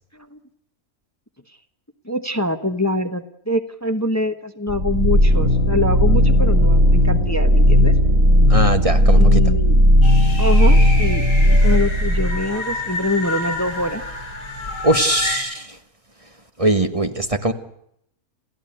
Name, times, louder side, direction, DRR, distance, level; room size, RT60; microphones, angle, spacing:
voice 1, 2.1-7.9 9.2-9.8 10.4-14.0, left 1 dB, 10° left, 8 dB, 1.0 m, -24 dB
sound 1, 4.7-12.5, equal, 60° right, 4.5 m, -15 dB
voice 2, 8.5-9.4 14.8-15.8 16.6-17.5, right 1 dB, 25° right, 7 dB, 1.4 m, -20 dB
sound 2, 10.0-15.4, left 2 dB, 65° left, 7.0 m, -29 dB
28.5 x 15.5 x 9.1 m, 0.74 s
omnidirectional pair, 1.6 m